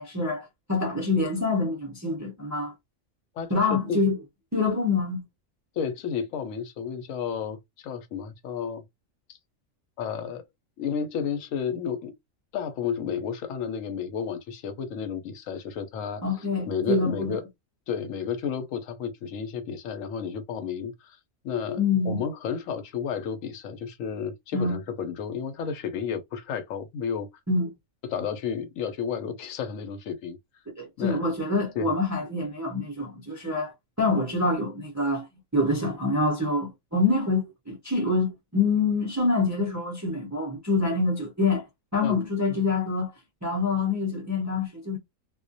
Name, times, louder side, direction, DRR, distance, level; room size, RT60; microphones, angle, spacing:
voice 1, 0.0-2.7 3.5-4.2 4.5-5.2 16.2-17.4 21.7-22.2 24.5-24.8 27.5-27.7 30.8-35.3 35.5-41.6 41.9-43.1 43.4-45.0, left 3 dB, 25° right, 0.4 m, -26 dB
voice 2, 3.4-4.0 5.8-8.8 9.3-9.4 10.0-10.4 10.8-12.1 12.5-16.2 16.7-17.5 17.9-21.2 21.4-21.8 22.0-27.3 28.1-30.4 31.0-31.2 31.8-31.9 42.0-42.2, left 7 dB, 80° left, 1.0 m, -32 dB
2.3 x 2.1 x 2.5 m
omnidirectional pair, 1.3 m